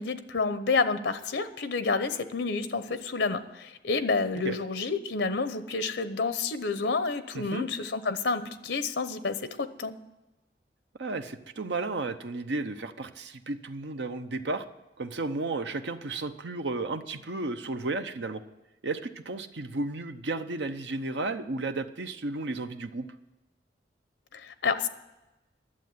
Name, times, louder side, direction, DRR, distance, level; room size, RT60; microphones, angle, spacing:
voice 1, 0.0-9.9 24.3-24.9, left 4 dB, 85° left, 11 dB, 0.8 m, -29 dB
voice 2, 7.3-7.7 11.0-14.7 15.0-18.4 18.8-23.1, right 3 dB, 85° right, 8 dB, 0.8 m, -33 dB
11.5 x 7.5 x 9.4 m, 0.99 s
head